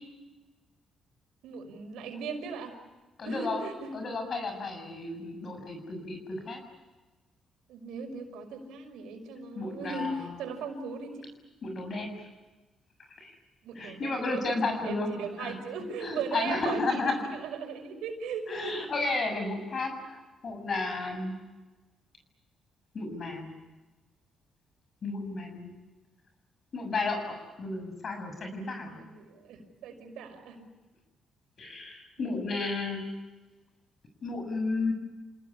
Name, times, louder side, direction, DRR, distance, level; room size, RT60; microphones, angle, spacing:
voice 1, 1.4-2.7 3.2-4.0 7.7-11.3 13.6-18.9 28.9-30.7 32.2-32.3, right 4 dB, 85° right, 5 dB, 5.8 m, -38 dB
voice 2, 3.2-3.6 3.9-6.6 9.5-10.4 11.6-12.3 13.2-13.3 13.7-15.1 15.4-15.6 16.0-17.2 18.5-21.3 22.9-23.5 25.0-25.7 26.7-29.0 31.6-33.0 34.2-34.9, left 3 dB, 50° left, 5 dB, 6.9 m, -33 dB
29.0 x 19.5 x 10.0 m, 1.2 s
cardioid pair, 90°, 0 cm